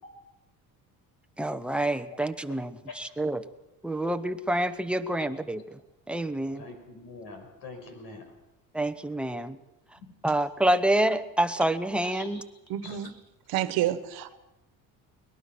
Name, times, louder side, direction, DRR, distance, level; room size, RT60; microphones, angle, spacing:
voice 1, 1.4-3.4 3.8-5.8 6.1-6.6 8.7-9.6 10.2-12.4, right 1 dB, 5° right, 0.8 m, -27 dB
voice 2, 6.5-8.3 10.0-10.1 12.0-12.4 12.8-13.1, left 3 dB, 80° left, 5.8 m, -44 dB
voice 3, 12.7-13.1 13.5-14.3, right 12 dB, 85° right, 1.4 m, -29 dB
22.5 x 20.0 x 6.1 m
cardioid pair, 145°, 35 cm